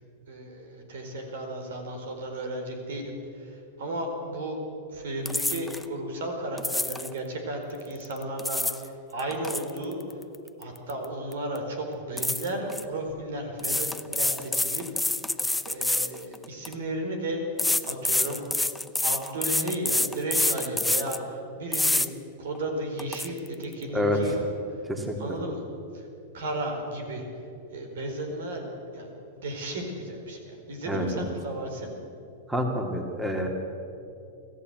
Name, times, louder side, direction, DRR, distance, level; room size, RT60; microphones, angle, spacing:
voice 1, 0.3-4.6 4.9-10.0 10.6-14.9 15.6-17.6 17.8-18.7 19.0-22.1 22.4-24.8 25.2-25.6 25.9-26.1 26.3-27.3 27.7-31.9, right 1 dB, 70° right, 4 dB, 4.4 m, -34 dB
sound 1, 5.2-5.8 6.6-7.1 8.2-8.8 9.2-11.0 11.3-11.6 12.2-12.8 13.6-16.7 17.6-21.2 21.7-22.1 22.5-22.6 23.0-23.3, left 2 dB, 5° left, 0.7 m, -27 dB
voice 2, 30.9-31.3 32.5-33.5, equal, 10° right, 3 dB, 2.8 m, -27 dB
25.5 x 14.5 x 8.1 m, 2.8 s
hypercardioid pair, 100°, 0 cm